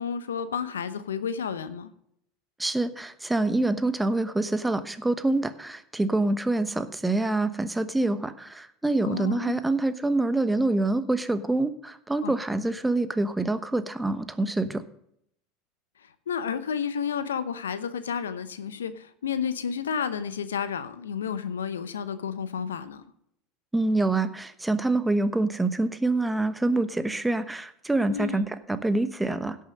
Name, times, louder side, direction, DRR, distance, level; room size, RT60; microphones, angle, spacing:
voice 1, 0.0-1.9 9.0-9.6 12.2-12.3 16.0-23.0 28.1-28.5, left 7 dB, 80° left, 13 dB, 0.8 m, -31 dB
voice 2, 2.6-14.8 23.7-29.6, right 2 dB, 10° right, 12 dB, 1.0 m, -26 dB
16.5 x 6.6 x 5.2 m, 0.71 s
figure-of-eight pair, 75°, 0 cm